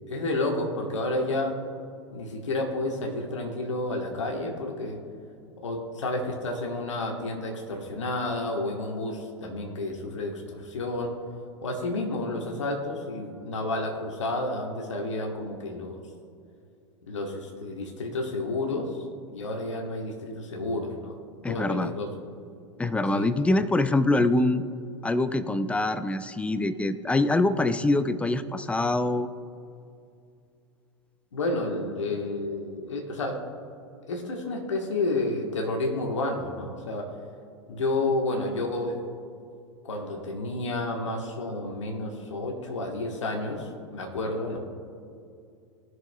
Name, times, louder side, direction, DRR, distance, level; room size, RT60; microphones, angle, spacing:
voice 1, 0.1-1.6 2.1-5.0 5.6-11.2 11.6-16.0 17.1-19.0 19.3-21.2 21.5-22.1 23.1-23.4 31.3-33.5 34.1-37.1 37.7-39.0 39.8-44.6, left 2 dB, 80° left, 1 dB, 1.3 m, -30 dB
voice 2, 21.4-21.9 22.8-24.6 25.0-29.3, left 2 dB, 10° left, 13 dB, 0.4 m, -24 dB
18.5 x 6.2 x 2.3 m, 2.5 s
hypercardioid pair, 95°, 15 cm